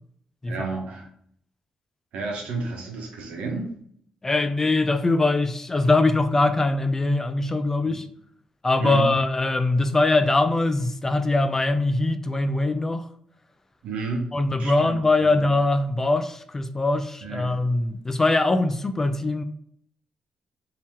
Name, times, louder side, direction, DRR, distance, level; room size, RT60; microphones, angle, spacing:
voice 1, 0.5-1.1 2.1-3.7 7.8-8.0 8.8-9.1 13.8-14.3 14.6-14.9 15.2-15.4 17.2-17.5, right 3 dB, 85° right, 1.0 m, -31 dB
voice 2, 4.2-8.1 8.6-13.1 14.3-19.4, left 2 dB, 20° left, 0.3 m, -22 dB
3.5 x 2.8 x 3.0 m
cardioid pair, 110°, 2 cm